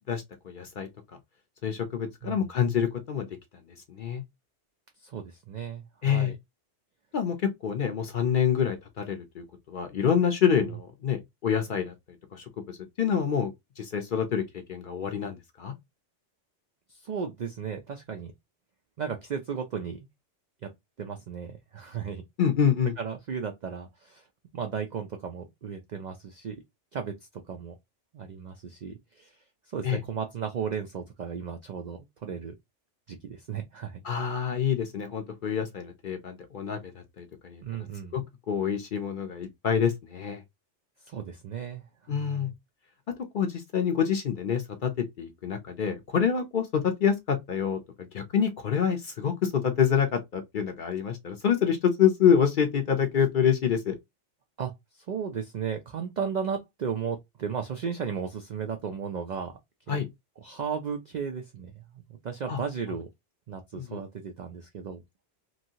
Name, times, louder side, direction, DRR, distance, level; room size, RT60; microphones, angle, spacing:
voice 1, 0.1-0.9 1.6-3.3 3.9-4.2 6.0-6.3 7.1-11.9 12.3-14.4 14.7-15.7 22.4-22.9 29.8-30.0 34.0-37.9 38.1-40.4 42.1-42.5 43.3-44.9 45.2-53.9 59.9-60.1 62.5-62.6 63.7-64.0, left 8 dB, 55° left, 0.6 m, -27 dB
voice 2, 5.0-6.4 16.9-18.3 19.0-20.1 20.6-20.7 21.0-22.2 23.0-24.2 24.5-26.6 26.9-27.7 28.1-29.3 29.7-32.5 33.1-34.0 37.6-38.2 41.1-41.8 42.1-42.4 54.6-59.5 59.9-60.0 60.4-61.8 62.2-63.1 63.5-65.0, right 7 dB, 65° right, 0.4 m, -35 dB
2.9 x 2.6 x 2.7 m
omnidirectional pair, 1.2 m